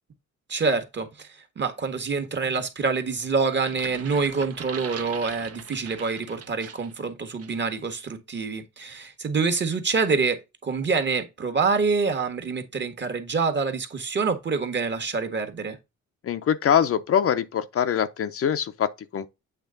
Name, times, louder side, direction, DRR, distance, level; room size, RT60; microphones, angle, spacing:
voice 1, 0.5-15.8, right 4 dB, 35° right, 1.4 m, -26 dB
sound 1, 3.5-7.0 7.4-7.6, right 8 dB, 50° right, 0.8 m, -40 dB
voice 2, 16.2-19.3, left 8 dB, 50° left, 0.7 m, -23 dB
8.2 x 3.3 x 3.8 m
cardioid pair, 90°, 30 cm